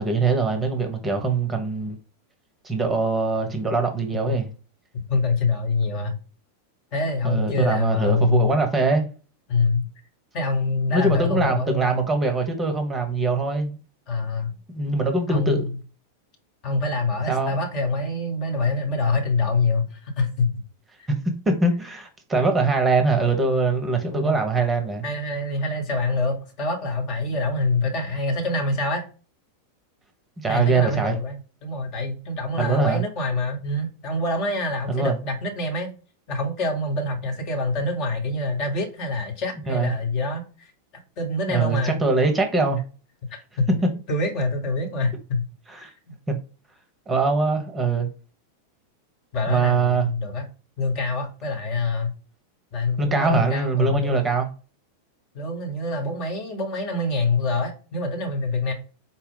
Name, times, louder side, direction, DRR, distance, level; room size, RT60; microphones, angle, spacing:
voice 1, 0.0-2.0 2.6-4.5 7.2-9.1 10.9-13.8 14.7-15.7 17.3-17.5 21.1-21.2 21.5-25.0 30.4-31.2 32.6-33.0 34.9-35.1 39.7-39.9 41.5-42.8 45.7-45.9 46.3-46.4 47.1-48.1 49.5-50.1 53.0-54.5, right 3 dB, 15° right, 0.8 m, -22 dB
voice 2, 5.1-6.2 6.9-8.6 9.5-9.8 10.3-12.1 14.1-14.5 15.3-15.8 16.6-20.5 24.1-24.4 25.0-29.0 30.5-31.4 31.6-35.9 36.3-40.7 41.2-42.0 43.6-43.7 44.1-45.4 46.1-46.2 49.3-50.4 50.8-52.1 52.7-54.2 55.3-58.7, left 3 dB, 40° left, 1.1 m, -25 dB
4.2 x 2.2 x 3.7 m
figure-of-eight pair, 90°, 0 cm